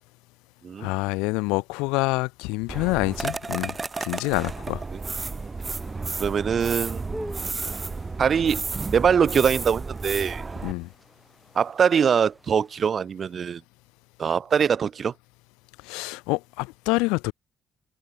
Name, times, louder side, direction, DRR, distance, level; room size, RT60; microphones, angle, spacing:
voice 1, 0.8-4.8 10.6-10.9 15.8-17.3, left 26 dB, 80° left, 1.4 m, -27 dB
sound 1, 2.7-10.7, right 4 dB, 30° right, 1.0 m, -32 dB
sound 2, 3.0-12.9, equal, ahead, 6.3 m, -48 dB
voice 2, 6.2-7.0 8.2-8.7 8.9-10.4 11.5-13.6 14.2-15.1, right 7 dB, 50° right, 2.1 m, -23 dB
hypercardioid pair, 45°, 0 cm